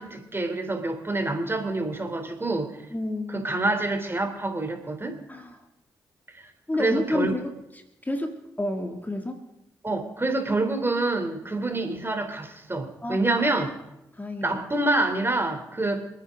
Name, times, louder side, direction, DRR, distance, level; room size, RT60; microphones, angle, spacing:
voice 1, 0.0-2.8 3.3-5.2 6.3-6.5 6.8-7.3 9.8-13.7 14.4-16.1, right 2 dB, 25° right, 5 dB, 3.3 m, -27 dB
voice 2, 2.9-3.5 5.3-5.6 6.7-7.5 8.0-9.4 13.0-13.4 14.1-14.6, left 1 dB, 20° left, 4 dB, 2.2 m, -30 dB
28.5 x 9.6 x 3.8 m, 0.89 s
hypercardioid pair, 40°, 9 cm